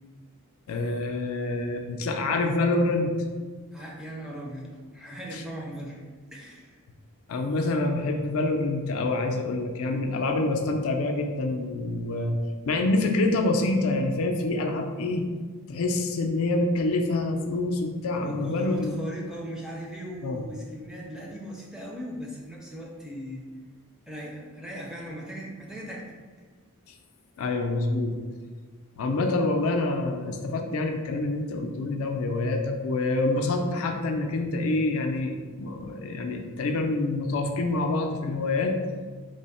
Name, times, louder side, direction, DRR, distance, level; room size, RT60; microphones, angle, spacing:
voice 1, 0.7-3.1 5.3-5.4 7.3-12.4 12.7-15.3 15.7-18.9 20.2-20.4 27.4-28.2 29.0-38.8, left 2 dB, 70° left, 3 dB, 0.4 m, -26 dB
voice 2, 3.7-6.0 6.3-6.8 18.1-23.4 24.1-26.0 35.7-35.8, equal, 5° right, -3 dB, 0.4 m, -38 dB
3.2 x 2.0 x 4.1 m, 1.5 s
head